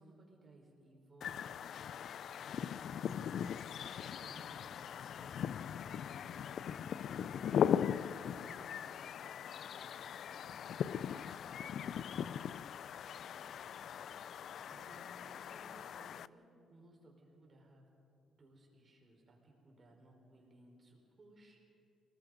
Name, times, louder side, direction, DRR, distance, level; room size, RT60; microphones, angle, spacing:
voice 1, 0.0-2.7 3.7-10.4 10.8-12.8 13.2-17.8 18.3-21.6, right 2 dB, 35° right, 0 dB, 5.4 m, -61 dB
sound 1, 1.2-16.3, left 8 dB, 65° left, 0.4 m, -39 dB
28.5 x 20.0 x 5.3 m, 2.6 s
cardioid pair, 90°, 0 cm